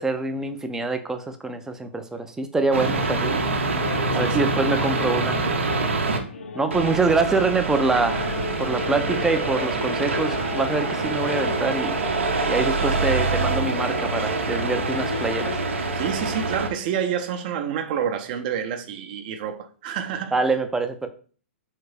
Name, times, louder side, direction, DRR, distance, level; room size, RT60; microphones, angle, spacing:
voice 1, 0.0-3.4 4.1-5.4 6.5-12.0 12.5-15.6 20.3-21.1, right 3 dB, 5° right, 0.4 m, -25 dB
sound 1, 2.7-6.2 6.7-16.7, right 3 dB, 75° right, 0.8 m, -25 dB
sound 2, 2.9-15.8, left 4 dB, 70° left, 0.5 m, -35 dB
voice 2, 4.2-4.5 15.9-20.4, right 8 dB, 40° right, 0.7 m, -28 dB
3.8 x 3.3 x 3.3 m
figure-of-eight pair, 120°, 7 cm